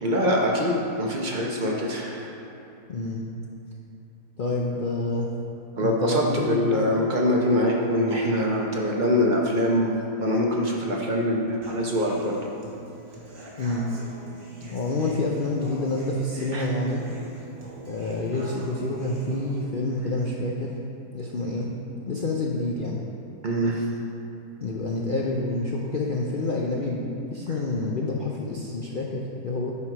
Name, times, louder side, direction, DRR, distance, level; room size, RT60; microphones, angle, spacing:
voice 1, 0.0-2.3 5.8-12.4 16.5-16.7 23.4-23.8, equal, 40° right, -2 dB, 0.7 m, -24 dB
voice 2, 2.9-3.2 4.4-5.3 5.8-7.0 13.6-13.9 14.7-17.0 17.9-20.7 21.1-21.7 22.1-23.0 24.6-29.7, left 2 dB, 70° left, -2 dB, 0.5 m, -28 dB
Human voice / Acoustic guitar, 11.6-19.6, right 1 dB, 65° right, 1.8 m, -42 dB
8.5 x 4.7 x 4.8 m, 2.9 s
omnidirectional pair, 1.7 m